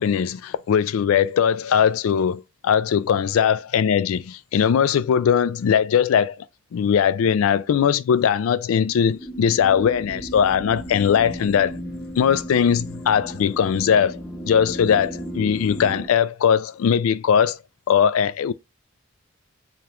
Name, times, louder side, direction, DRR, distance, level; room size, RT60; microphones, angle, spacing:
voice 1, 0.0-6.4 6.7-11.8 12.2-14.2 14.4-17.6 17.9-18.5, left 7 dB, 80° left, 0.3 m, -20 dB
sound 1, 8.8-16.1, right 1 dB, 10° left, 0.8 m, -35 dB
4.9 x 3.0 x 2.4 m
head